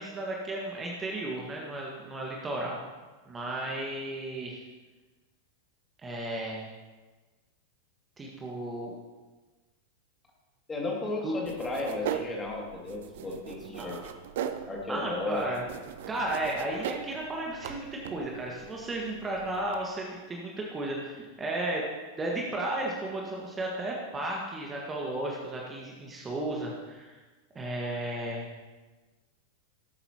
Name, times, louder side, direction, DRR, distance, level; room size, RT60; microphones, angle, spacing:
voice 1, 0.0-2.8 3.3-4.6 6.0-6.7 8.2-8.9 11.2-11.4 13.8-14.0 14.9-15.6 16.1-21.9 22.2-27.2 27.6-28.4, right 1 dB, 20° right, -2 dB, 1.7 m, -34 dB
voice 2, 10.7-14.0 14.7-15.5, left 3 dB, 15° left, -2 dB, 2.7 m, -34 dB
sound 1, 11.5-19.8, right 9 dB, 55° right, 0.6 m, -40 dB
18.0 x 8.9 x 3.0 m, 1.3 s
figure-of-eight pair, 90°, 0 cm